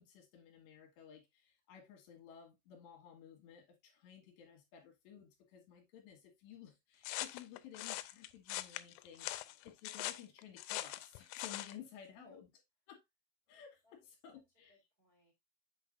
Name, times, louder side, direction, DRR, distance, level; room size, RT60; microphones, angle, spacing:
voice 1, 0.0-12.5 12.9-13.0 13.5-14.8, left 9 dB, 70° left, 3.6 m, -55 dB
sound 1, 7.0-11.8, left 16 dB, 90° left, 3.1 m, -42 dB
voice 2, 9.3-9.7 12.2-12.4 13.8-14.0 14.3-14.4 14.7-15.3, left 2 dB, 15° right, 2.2 m, -67 dB
8.1 x 5.8 x 2.5 m
omnidirectional pair, 5.5 m